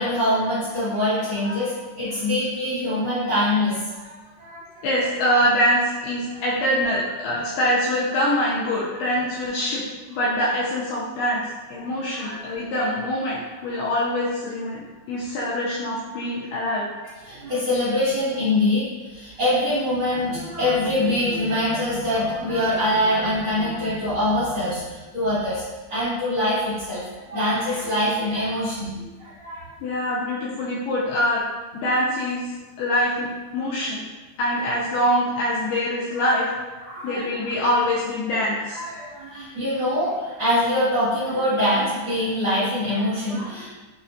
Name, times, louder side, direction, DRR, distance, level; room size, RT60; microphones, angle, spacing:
voice 1, 0.0-4.9 5.2-5.3 6.3-6.5 12.1-12.9 16.6-16.7 17.2-25.6 25.9-29.7 36.8-37.5 38.7-43.7, left 1 dB, 70° right, -15 dB, 1.2 m, -24 dB
voice 2, 4.8-9.8 10.1-11.4 11.7-14.8 15.1-16.9 29.8-31.4 31.7-34.0 34.4-36.5 36.8-38.8, equal, 85° left, -6 dB, 2.3 m, -24 dB
6.5 x 2.4 x 2.6 m, 1.2 s
omnidirectional pair, 5.1 m